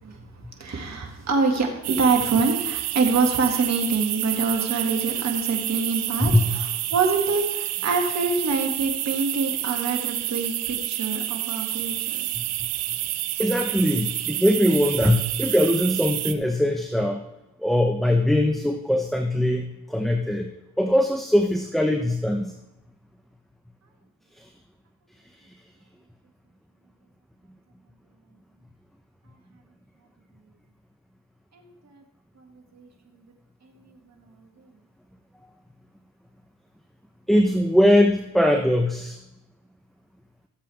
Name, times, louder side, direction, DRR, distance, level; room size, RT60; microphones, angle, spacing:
voice 1, 0.0-12.2 31.5-32.0 32.4-32.5 32.7-32.9 33.6-34.1 34.6-34.7, right 4 dB, 45° right, 2 dB, 2.1 m, -26 dB
sound 1, 1.8-16.3, right 15 dB, 75° right, 0.7 m, -29 dB
voice 2, 13.4-17.2 17.6-20.5 20.8-22.5 24.4-24.5 25.3-25.5 37.3-39.2, left 1 dB, ahead, 4 dB, 0.9 m, -21 dB
14.5 x 7.5 x 3.5 m, 0.95 s
hypercardioid pair, 50°, 39 cm